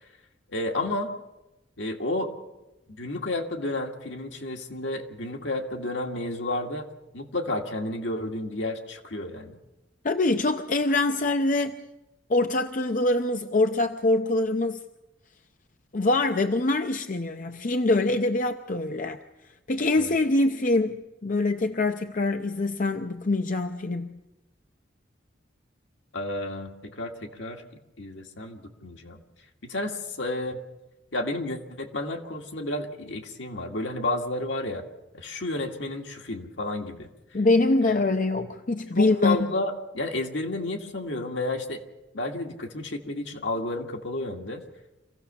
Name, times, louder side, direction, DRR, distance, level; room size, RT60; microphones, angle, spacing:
voice 1, 0.5-1.1 1.8-2.3 2.9-6.9 7.1-9.6 19.9-20.1 26.1-27.6 28.0-29.2 29.7-30.6 31.1-34.8 35.1-37.1 39.0-41.8 42.1-44.6, left 2 dB, 75° left, 2 dB, 2.2 m, -31 dB
voice 2, 10.0-11.7 12.3-14.8 15.9-19.2 19.7-24.2 37.3-39.5, left 2 dB, 45° left, 7 dB, 0.7 m, -24 dB
25.5 x 16.0 x 6.9 m, 1.0 s
head